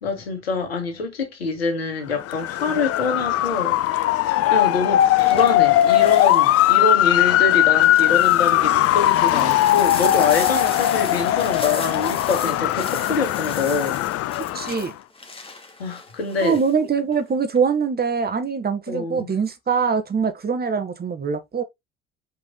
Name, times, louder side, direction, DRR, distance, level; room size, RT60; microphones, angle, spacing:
voice 1, 0.0-4.2 4.5-14.1 15.8-16.6 18.9-19.3, left 4 dB, 90° left, 2.0 m, -25 dB
Motor vehicle (road) / Siren, 2.2-14.9, left 14 dB, 50° left, 0.7 m, -19 dB
sound 1, 3.4-3.7 5.0-6.9 7.5-16.7 17.1-17.6, left 3 dB, 20° left, 2.5 m, -37 dB
voice 2, 14.3-14.9 16.4-21.6, right 6 dB, 30° right, 1.8 m, -23 dB
5.7 x 5.2 x 3.9 m
hypercardioid pair, 60°, 30 cm